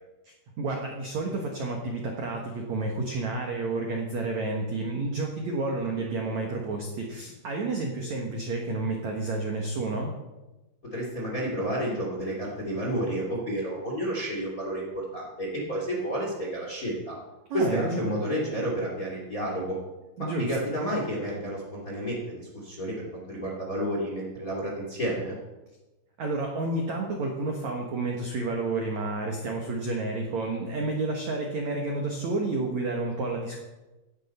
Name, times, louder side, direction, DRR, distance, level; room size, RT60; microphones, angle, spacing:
voice 1, 0.6-10.1 17.5-18.2 20.2-20.5 26.2-33.6, right 2 dB, 70° right, 1 dB, 1.7 m, -30 dB
voice 2, 10.9-17.2 17.5-19.8 20.4-25.4, equal, 25° left, -2 dB, 1.8 m, -31 dB
15.5 x 10.5 x 4.4 m, 1.1 s
omnidirectional pair, 5.4 m